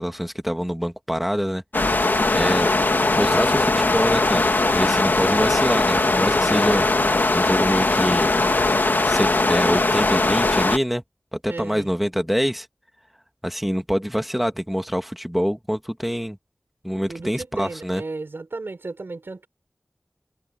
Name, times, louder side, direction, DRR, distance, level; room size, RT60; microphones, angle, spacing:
voice 1, 0.0-1.6 2.3-2.7 3.2-6.9 7.3-8.3 9.0-11.0 11.3-12.7 13.4-16.4 16.8-18.0, equal, 5° right, 1.9 m, -25 dB
sound 1, 1.7-10.8, left 2 dB, 60° left, 1.7 m, -20 dB
voice 2, 2.2-2.5 11.5-11.9 17.1-19.5, right 3 dB, 80° right, 3.9 m, -34 dB
wide cardioid pair, 60°, 4 cm